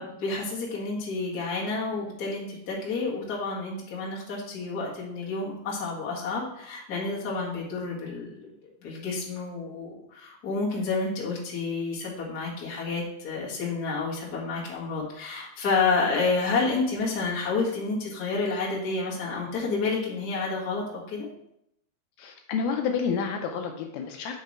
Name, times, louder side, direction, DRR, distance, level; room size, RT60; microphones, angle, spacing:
voice 1, 0.0-8.5 8.8-21.3, left 4 dB, 50° left, -5 dB, 1.1 m, -29 dB
voice 2, 22.2-24.4, left 6 dB, 80° left, 3 dB, 2.2 m, -29 dB
5.9 x 4.2 x 4.6 m, 0.79 s
omnidirectional pair, 4.6 m